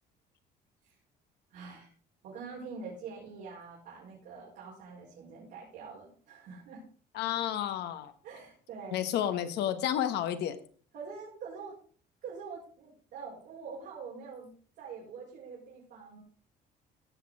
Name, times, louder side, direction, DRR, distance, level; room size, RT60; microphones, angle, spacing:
voice 1, 1.5-1.9 2.2-6.8 8.2-9.0 10.9-11.8 12.2-14.5 14.8-16.2, right 5 dB, 85° right, -6 dB, 4.9 m, -45 dB
voice 2, 7.1-8.1 8.9-10.6, left 10 dB, 80° left, 10 dB, 1.4 m, -31 dB
16.5 x 6.4 x 4.8 m, 0.44 s
cardioid pair, 110°, 17 cm